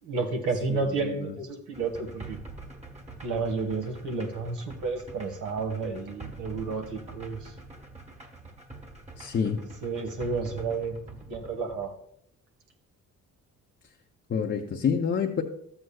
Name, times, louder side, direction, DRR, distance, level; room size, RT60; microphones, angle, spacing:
voice 1, 0.0-2.4 3.2-7.5 9.8-11.9, right 4 dB, 80° right, 4 dB, 1.7 m, -31 dB
voice 2, 0.7-1.4 9.2-9.6 14.3-15.4, left 6 dB, 40° left, 0 dB, 0.8 m, -28 dB
sound 1, 1.7-11.9, right 2 dB, 20° right, 1.3 m, -45 dB
12.5 x 7.8 x 2.4 m, 0.69 s
cardioid pair, 90°, 30 cm